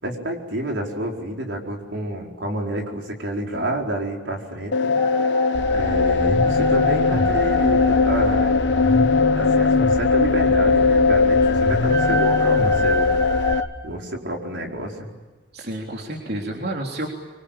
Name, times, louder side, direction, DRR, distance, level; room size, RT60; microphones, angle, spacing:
voice 1, 0.0-4.9 5.7-8.5 9.4-13.1 13.8-15.1, right 1 dB, 80° right, 1 dB, 4.7 m, -29 dB
sound 1, 4.7-13.6, left 4 dB, 75° left, 0.9 m, -19 dB
sound 2, 5.0-13.7, left 1 dB, 15° left, 3.3 m, -30 dB
sound 3, 5.5-13.5, equal, 55° left, 4.5 m, -28 dB
voice 2, 15.5-17.1, right 1 dB, 60° right, 0 dB, 3.5 m, -30 dB
25.5 x 24.5 x 8.9 m, 1.3 s
head